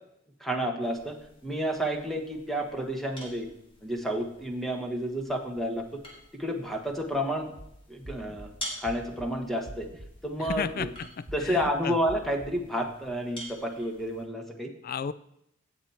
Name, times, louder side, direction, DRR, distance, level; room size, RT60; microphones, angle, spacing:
voice 1, 0.4-1.2 1.4-3.5 3.8-6.0 6.3-7.5 7.9-8.5 8.8-9.9 10.2-10.9 11.3-14.7, equal, ahead, 2 dB, 1.3 m, -30 dB
sound 1, 0.8-14.2, equal, 30° left, 3.2 m, -48 dB
sound 2, 7.5-7.7 8.0-8.5 8.9-9.3 9.7-10.1 10.5-10.9 11.3-11.7 12.1-12.5, right 1 dB, 45° right, 1.6 m, -44 dB
voice 2, 10.4-12.0 14.8-15.1, left 6 dB, 50° left, 15 dB, 0.4 m, -34 dB
17.5 x 7.2 x 4.3 m, 0.77 s
head